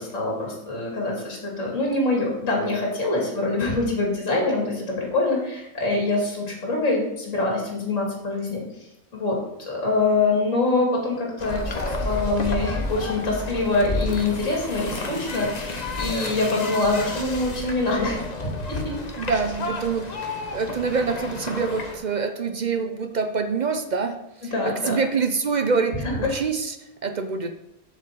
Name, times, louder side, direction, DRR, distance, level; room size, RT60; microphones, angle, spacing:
voice 1, 0.0-8.6 9.1-18.8 24.4-25.0 26.0-26.3, left 2 dB, 55° left, -2 dB, 2.7 m, -25 dB
sound 1, 11.4-22.0, left 2 dB, 30° left, 0.9 m, -31 dB
voice 2, 19.2-20.1 20.5-24.2 24.4-26.8 27.0-27.5, right 5 dB, 50° right, 7 dB, 0.5 m, -25 dB
7.7 x 5.1 x 7.4 m, 0.85 s
omnidirectional pair, 1.5 m